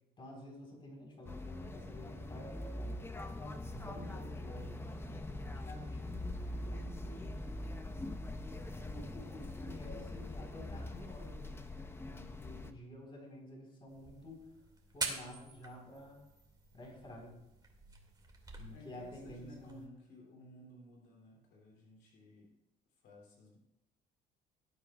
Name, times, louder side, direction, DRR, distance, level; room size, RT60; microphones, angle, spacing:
voice 1, 0.2-2.9 3.3-5.2 5.4-7.4 8.5-14.5 14.9-16.2 16.7-17.4 18.6-19.8, left 1 dB, 30° left, -1 dB, 3.8 m, -51 dB
sound 1, 1.3-12.7, left 1 dB, 15° left, 0.7 m, -43 dB
sound 2, 13.9-19.9, right 3 dB, 25° right, 2.1 m, -46 dB
voice 2, 18.7-22.6 22.9-23.6, left 2 dB, 75° left, -2 dB, 2.7 m, -57 dB
18.0 x 8.7 x 2.3 m, 0.89 s
cardioid pair, 110°, 17 cm